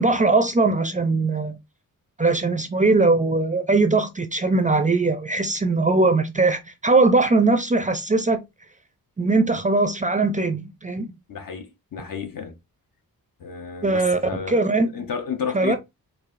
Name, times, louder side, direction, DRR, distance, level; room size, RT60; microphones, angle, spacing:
voice 1, 0.0-1.6 2.2-8.4 9.2-11.1 13.8-14.2 14.5-14.9 15.5-15.8, right 3 dB, 20° right, 0.4 m, -20 dB
voice 2, 11.3-12.5 13.4-14.6 14.9-15.8, left 6 dB, 65° left, 0.9 m, -31 dB
4.6 x 2.6 x 2.4 m
wide cardioid pair, 130°, 36 cm